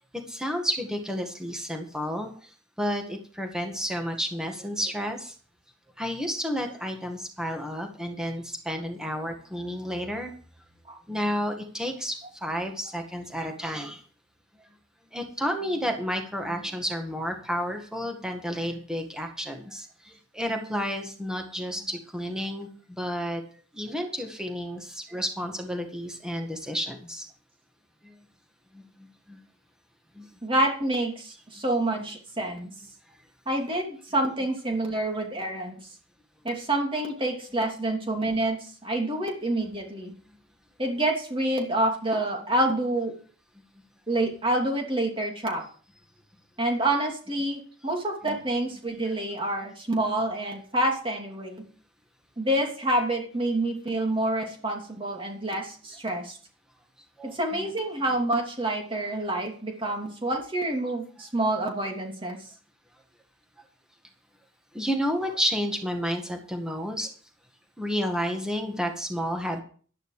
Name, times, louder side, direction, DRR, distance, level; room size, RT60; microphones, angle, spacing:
voice 1, 0.3-2.3 2.8-5.3 6.0-10.3 11.1-14.0 15.1-23.4 23.7-27.3 28.7-28.8 29.3-29.4 30.2-30.3 31.9-32.0 48.2-48.4 57.2-57.7 64.7-67.1 67.8-69.6, equal, 5° right, 3 dB, 1.9 m, -31 dB
voice 2, 30.4-32.7 33.5-35.8 36.4-40.1 40.8-43.1 44.1-45.6 46.6-51.6 52.4-56.4 57.2-62.4, right 1 dB, 25° right, 2 dB, 2.9 m, -27 dB
12.0 x 11.0 x 5.0 m, 0.43 s
head